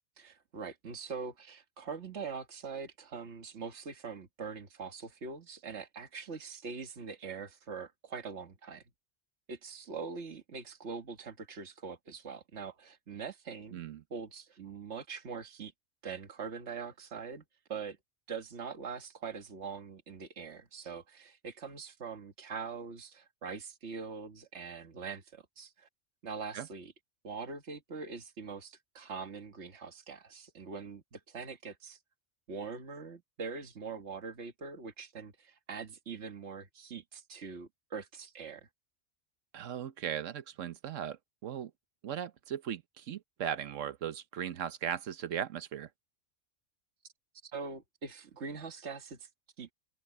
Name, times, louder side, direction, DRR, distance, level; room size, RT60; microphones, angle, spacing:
voice 1, 0.2-8.8 9.5-13.8 14.1-15.7 16.0-17.4 17.7-18.0 18.3-25.9 26.2-26.9 27.2-32.0 32.5-38.6 47.4-49.3 49.6-49.7, right 5 dB, 65° right, 1.9 m, -43 dB
voice 2, 13.7-14.0 26.5-26.7 39.5-41.7 42.0-45.9, right 9 dB, 85° right, 1.2 m, -38 dB
open air
omnidirectional pair, 1.3 m